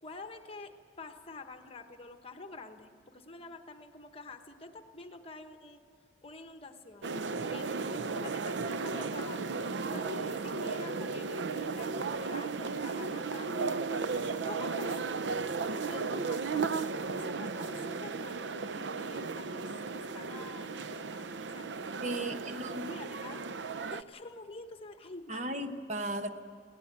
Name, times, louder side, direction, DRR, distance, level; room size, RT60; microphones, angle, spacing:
voice 1, 0.0-5.8 6.2-7.1 7.5-15.4 15.8-23.4 23.9-25.4, left 2 dB, 30° left, 7 dB, 1.2 m, -48 dB
sound 1, 7.0-24.0, right 4 dB, 70° right, 0.6 m, -35 dB
voice 2, 22.0-23.0 25.3-26.3, right 1 dB, 40° right, 6 dB, 1.2 m, -36 dB
23.0 x 17.5 x 8.5 m, 2.3 s
head